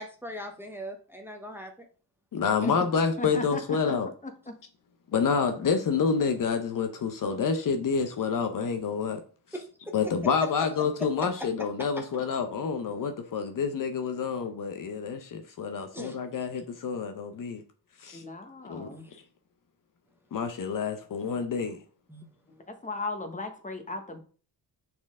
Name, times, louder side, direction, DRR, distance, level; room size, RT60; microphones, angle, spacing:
voice 1, 0.0-1.7 9.5-9.6 15.9-16.1 18.9-19.0 22.1-22.2, equal, 5° right, 0.9 m, -40 dB
voice 2, 2.3-4.1 5.1-9.2 9.9-17.6 18.0-18.2 18.6-18.9 20.3-21.8, left 5 dB, 50° left, 0.8 m, -28 dB
voice 3, 3.2-3.6 4.2-4.5 11.0-11.1 18.1-19.1 22.5-24.2, left 2 dB, 20° left, 1.2 m, -36 dB
6.0 x 4.4 x 3.7 m
cardioid pair, 100°, 41 cm